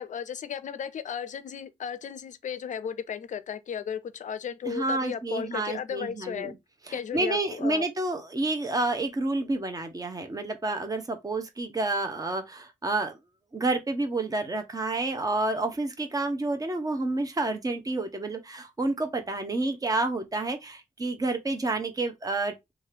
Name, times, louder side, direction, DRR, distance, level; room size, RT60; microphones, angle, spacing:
voice 1, 0.0-6.5 6.9-7.8, left 8 dB, 60° left, 0.4 m, -35 dB
voice 2, 4.7-6.5 6.9-13.2 13.5-22.5, right 2 dB, 25° right, 0.7 m, -29 dB
2.7 x 2.4 x 3.1 m
cardioid pair, 85°, 14 cm